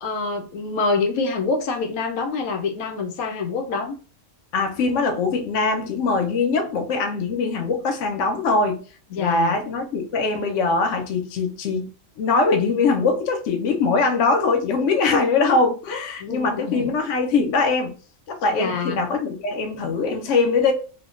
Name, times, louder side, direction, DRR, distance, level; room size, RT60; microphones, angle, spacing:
voice 1, 0.0-4.0 9.1-9.6 16.2-16.9 18.5-19.0, left 4 dB, 85° left, 1.1 m, -26 dB
voice 2, 4.5-8.8 9.2-11.9 12.2-17.9 18.3-20.7, left 4 dB, 65° left, 0.9 m, -22 dB
3.4 x 2.1 x 2.4 m
omnidirectional pair, 1.5 m